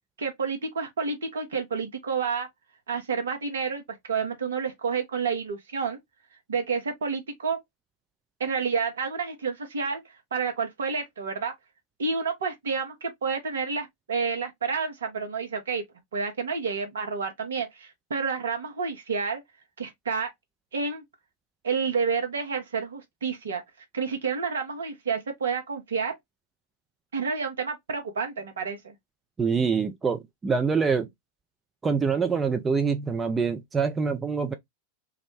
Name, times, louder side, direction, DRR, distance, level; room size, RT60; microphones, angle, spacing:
voice 1, 0.2-2.5 2.9-6.0 6.5-7.6 8.4-10.0 10.3-11.5 12.0-15.8 16.1-19.4 19.8-20.3 20.7-21.0 21.6-23.6 23.9-26.1 27.1-28.9, right 5 dB, 65° right, 0.8 m, -29 dB
voice 2, 29.4-31.1 31.8-34.5, right 5 dB, 15° right, 0.4 m, -25 dB
2.4 x 2.0 x 3.1 m
figure-of-eight pair, 90°, 0 cm